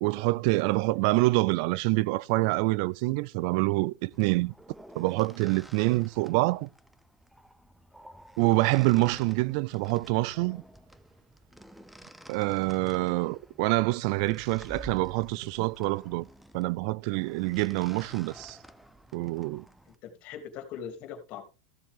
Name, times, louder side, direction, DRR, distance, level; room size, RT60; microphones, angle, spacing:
voice 1, 0.0-4.5 4.9-6.7 8.4-10.6 12.3-16.3 16.5-18.6 19.1-19.6, right 22 dB, 65° right, 0.4 m, -26 dB
sound 1, 4.1-20.0, right 1 dB, 5° right, 0.9 m, -51 dB
voice 2, 10.2-10.5 20.0-21.4, left 8 dB, 50° left, 3.0 m, -41 dB
15.0 x 7.2 x 3.8 m
supercardioid pair, 115°, 3 cm